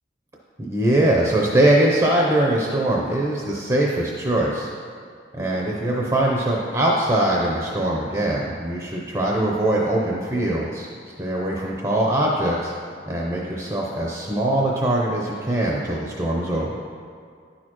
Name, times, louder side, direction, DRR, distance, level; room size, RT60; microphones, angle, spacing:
voice 1, 0.6-4.7 5.3-10.9 11.2-12.7 13.1-16.8, right 1 dB, 20° right, -3 dB, 0.7 m, -22 dB
10.0 x 6.5 x 3.0 m, 2.1 s
head